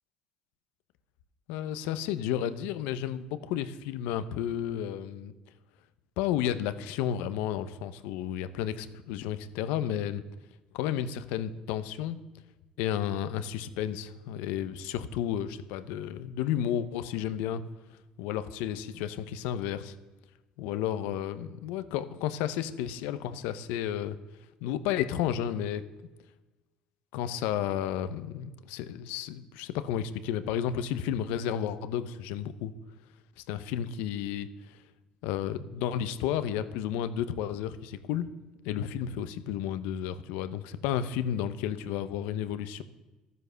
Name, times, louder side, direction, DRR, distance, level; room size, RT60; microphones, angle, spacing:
voice 1, 1.5-5.3 6.2-10.2 10.7-12.2 12.8-17.6 18.2-19.9 20.6-24.2 24.6-25.8 27.1-32.7 33.5-34.8 35.2-38.3 38.6-42.8, left 10 dB, 90° left, 13 dB, 0.8 m, -32 dB
12.0 x 9.6 x 6.8 m, 1.2 s
cardioid pair, 95°, 3 cm